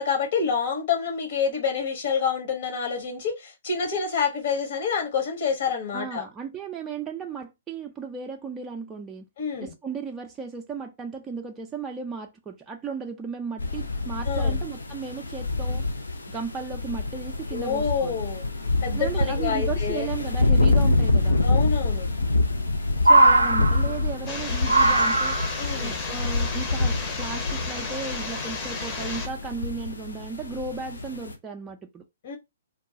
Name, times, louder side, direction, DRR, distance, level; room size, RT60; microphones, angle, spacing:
voice 1, 0.0-6.2 9.4-9.7 14.3-14.6 17.5-18.4 18.8-20.1 21.4-22.1 25.6-26.0 32.2-32.4, left 6 dB, 50° left, 1.1 m, -27 dB
voice 2, 5.9-9.3 9.6-15.8 16.3-18.2 18.9-21.4 23.0-25.4 25.7-32.0, right 5 dB, 15° right, 0.4 m, -35 dB
sound 1, 13.6-31.3, left 3 dB, 75° left, 0.5 m, -26 dB
sound 2, 17.7-17.8 18.0-18.1 18.7-19.3 20.9-21.0 22.2-22.7 22.9-24.2 24.7-25.7 26.7-26.8, right 2 dB, 85° right, 0.4 m, -20 dB
sound 3, 24.3-29.3, left 3 dB, 25° left, 0.8 m, -33 dB
2.3 x 2.2 x 3.8 m
figure-of-eight pair, 125°, 0 cm